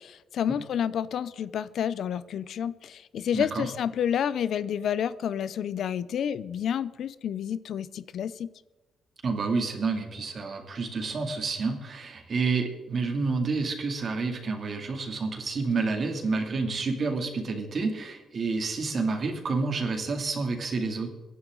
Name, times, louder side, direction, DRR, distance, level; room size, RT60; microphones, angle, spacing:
voice 1, 0.0-8.5, left 9 dB, 65° left, 16 dB, 0.6 m, -29 dB
voice 2, 3.3-3.7 9.2-21.1, right 4 dB, 40° right, 4 dB, 2.6 m, -29 dB
23.5 x 11.0 x 3.9 m, 1.1 s
cardioid pair, 150°, 0 cm